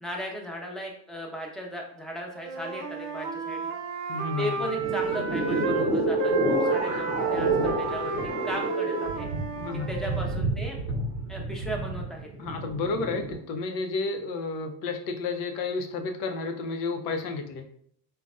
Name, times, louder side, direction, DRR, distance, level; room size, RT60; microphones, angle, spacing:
voice 1, 0.0-3.7 4.4-9.3 9.9-10.8 11.3-12.3, equal, ahead, -1 dB, 0.8 m, -36 dB
Wind instrument woodwind instrument, 2.3-5.9 6.2-10.4, right 4 dB, 80° right, 0.6 m, -32 dB
voice 2, 4.1-4.6 9.6-9.9 12.4-17.6, left 3 dB, 65° left, 5 dB, 0.7 m, -31 dB
sound 1, 4.6-13.4, right 2 dB, 35° right, 1.0 m, -29 dB
3.9 x 2.2 x 2.4 m, 0.64 s
hypercardioid pair, 70°, 46 cm